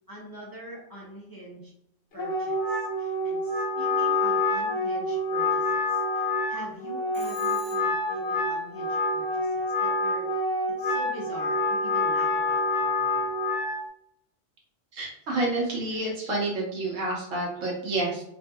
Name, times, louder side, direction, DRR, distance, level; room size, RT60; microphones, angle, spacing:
voice 1, 0.1-1.7 2.1-10.3 10.8-13.3, equal, 30° left, -5 dB, 0.4 m, -44 dB
Wind instrument woodwind instrument, 2.1-13.8, left 2 dB, 60° left, 0.8 m, -27 dB
Telephone, 7.1-8.2, equal, 45° right, 0.9 m, -47 dB
voice 2, 14.9-18.2, right 2 dB, 90° right, -2 dB, 1.3 m, -29 dB
3.1 x 2.7 x 2.3 m, 0.77 s
omnidirectional pair, 1.3 m